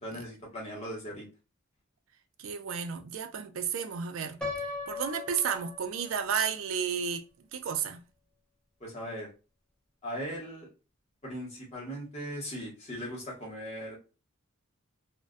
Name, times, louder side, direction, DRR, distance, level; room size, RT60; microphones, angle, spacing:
voice 1, 0.0-1.3 8.8-9.3 10.0-10.7 11.2-14.0, equal, 35° left, 1.1 m, -39 dB
voice 2, 2.4-4.4 4.9-8.0, right 7 dB, 70° right, 0.4 m, -32 dB
Piano, 4.4-6.4, left 3 dB, 5° left, 0.5 m, -38 dB
2.4 x 2.1 x 2.4 m
head